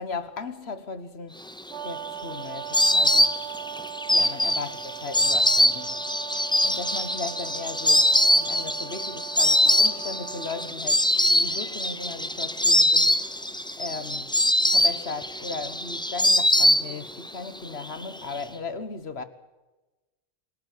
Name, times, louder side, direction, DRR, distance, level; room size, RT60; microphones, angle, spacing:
voice 1, 0.0-1.4 1.8-3.4 4.1-6.0 6.6-13.2 13.8-14.3 14.7-19.2, left 4 dB, 70° left, 1.7 m, -36 dB
Insect, 1.6-17.3 17.6-18.4, left 1 dB, 5° left, 0.7 m, -23 dB
Brass instrument, 1.7-10.7, right 11 dB, 80° right, 1.2 m, -39 dB
27.0 x 11.5 x 9.4 m
omnidirectional pair, 1.1 m